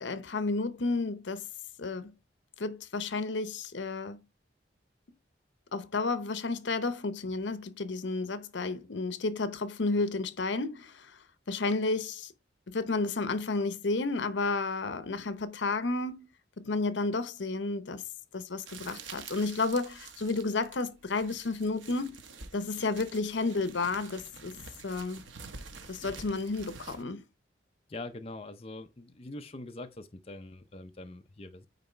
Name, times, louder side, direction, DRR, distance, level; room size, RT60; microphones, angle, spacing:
voice 1, 0.0-1.5 1.8-2.1 2.6-4.2 5.7-11.2 11.5-12.3 12.7-16.3 16.6-18.0 18.3-22.2 22.5-24.5 24.8-25.2 25.9-27.2, left 3 dB, 75° left, 0.8 m, -32 dB
sound 1, 18.7-27.0, right 5 dB, 85° right, 1.1 m, -48 dB
voice 2, 27.9-31.7, left 2 dB, 30° left, 0.6 m, -43 dB
9.3 x 3.1 x 4.4 m
head